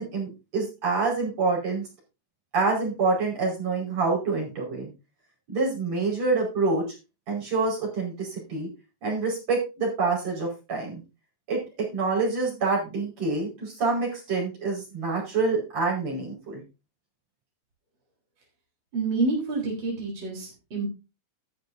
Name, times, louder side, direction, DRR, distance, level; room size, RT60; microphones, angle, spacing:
voice 1, 0.0-1.9 2.5-4.9 5.5-6.8 7.3-8.7 9.0-11.0 11.5-16.6, right 3 dB, 55° right, -2 dB, 6.2 m, -27 dB
voice 2, 18.9-20.9, right 3 dB, 35° right, -2 dB, 4.5 m, -28 dB
13.0 x 11.5 x 2.7 m, 0.28 s
omnidirectional pair, 3.6 m